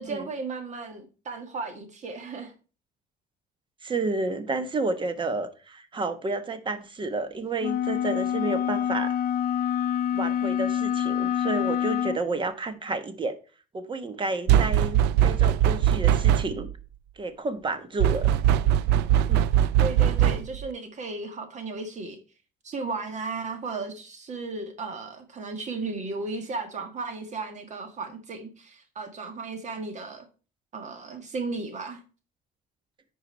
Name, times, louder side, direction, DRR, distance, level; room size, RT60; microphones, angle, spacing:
voice 1, 0.0-2.5 19.8-22.2 22.6-30.3 30.7-32.0, right 3 dB, 45° right, 1.7 m, -35 dB
voice 2, 3.8-9.1 10.1-13.4 13.7-16.7 17.2-18.3 19.3-19.5, right 3 dB, 30° right, 1.2 m, -30 dB
sound 1, 7.6-12.2, left 9 dB, 60° left, 0.7 m, -26 dB
sound 2, 14.5-16.7 18.0-20.7, right 11 dB, 90° right, 0.5 m, -21 dB
9.7 x 4.7 x 4.5 m
cardioid pair, 110°, 17 cm